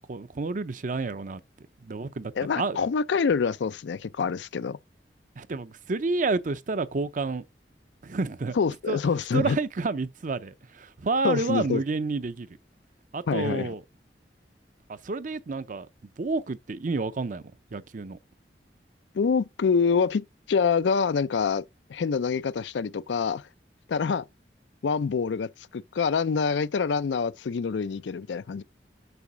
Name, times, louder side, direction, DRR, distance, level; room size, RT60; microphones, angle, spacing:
voice 1, 0.1-1.4 1.8-2.8 5.4-7.4 8.0-8.5 8.9-9.0 9.3-12.5 13.1-13.8 14.9-15.9 16.2-17.4 17.7-18.2, right 3 dB, 45° right, 0.5 m, -29 dB
voice 2, 2.4-4.8 8.5-9.6 11.2-11.8 13.3-13.7 19.1-21.6 21.9-23.5 23.9-24.2 24.8-28.6, left 5 dB, 85° left, 0.4 m, -26 dB
6.9 x 4.5 x 6.1 m
head